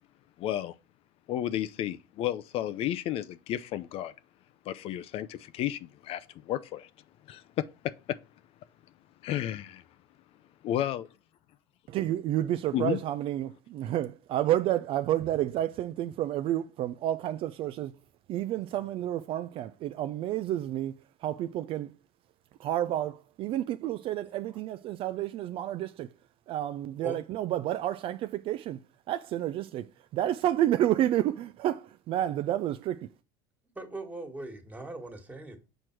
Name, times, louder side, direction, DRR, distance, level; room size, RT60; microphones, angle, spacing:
voice 1, 0.4-0.8 1.3-4.1 4.7-6.9 7.3-7.6 9.2-9.8 10.6-11.1 12.7-13.0, left 12 dB, 50° left, 0.5 m, -32 dB
voice 2, 11.9-18.0 18.3-21.0 21.2-21.9 22.6-26.1 26.5-28.8 29.1-29.8 30.1-33.1, right 12 dB, 50° right, 0.4 m, -30 dB
voice 3, 33.7-35.6, right 2 dB, 15° right, 1.7 m, -40 dB
6.3 x 4.5 x 4.5 m
supercardioid pair, 100°, 12 cm